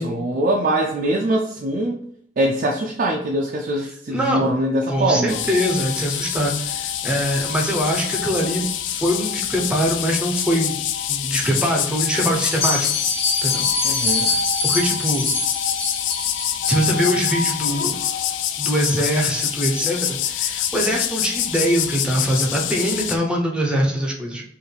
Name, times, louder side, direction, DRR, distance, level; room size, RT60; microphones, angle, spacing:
voice 1, 0.0-2.0 2.4-5.4 13.8-14.4, right 1 dB, 50° right, 0 dB, 0.4 m, -22 dB
voice 2, 4.1-4.5 4.9-10.8 11.1-12.9 13.4-13.7 14.2-15.3 16.7-18.0 18.6-24.4, equal, 5° right, -1 dB, 0.7 m, -23 dB
sound 1, 5.3-23.2, left 9 dB, 85° left, 0.4 m, -25 dB
Bell, 12.4-17.1, left 3 dB, 35° left, 0.8 m, -25 dB
4.7 x 2.5 x 3.3 m, 0.68 s
head